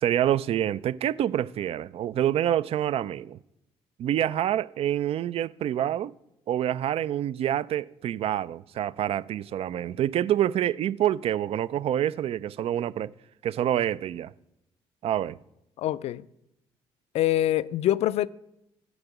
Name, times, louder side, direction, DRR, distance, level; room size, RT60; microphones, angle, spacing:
voice 1, 0.0-3.4 4.0-6.1 6.5-13.1 13.4-14.3 15.0-15.4, right 11 dB, 55° right, 0.4 m, -27 dB
voice 2, 15.8-16.3 17.1-18.3, left 13 dB, 60° left, 0.4 m, -24 dB
6.4 x 6.1 x 7.2 m
supercardioid pair, 65°, 12 cm